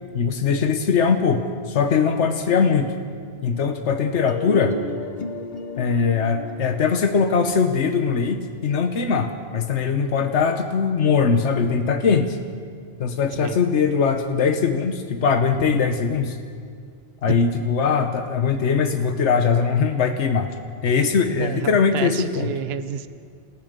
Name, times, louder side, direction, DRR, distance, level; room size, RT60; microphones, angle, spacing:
voice 1, 0.1-2.9 3.4-4.8 5.8-12.4 13.0-16.4 17.2-20.5 20.8-22.5, left 5 dB, 80° left, 6 dB, 1.3 m, -21 dB
sound 1, 4.3-10.1, left 4 dB, 35° left, 1.0 m, -35 dB
voice 2, 21.4-23.1, right 7 dB, 65° right, 12 dB, 1.0 m, -29 dB
28.0 x 14.0 x 6.7 m, 2.1 s
omnidirectional pair, 1.2 m